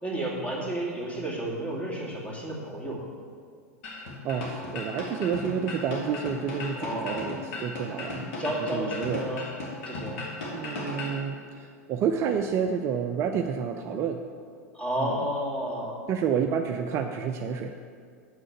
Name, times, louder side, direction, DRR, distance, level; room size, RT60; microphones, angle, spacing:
voice 1, 0.0-3.0 6.8-7.3 8.4-9.5 9.8-10.2 14.7-16.0, right 1 dB, 15° left, -4 dB, 2.6 m, -31 dB
sound 1, 3.8-11.2, left 2 dB, 55° left, 2.1 m, -36 dB
voice 2, 3.9-8.3 8.7-9.3 10.5-14.2 15.0-15.2 16.1-17.8, right 7 dB, 35° right, 5 dB, 0.5 m, -29 dB
7.4 x 6.3 x 7.6 m, 2.2 s
figure-of-eight pair, 90°, 8 cm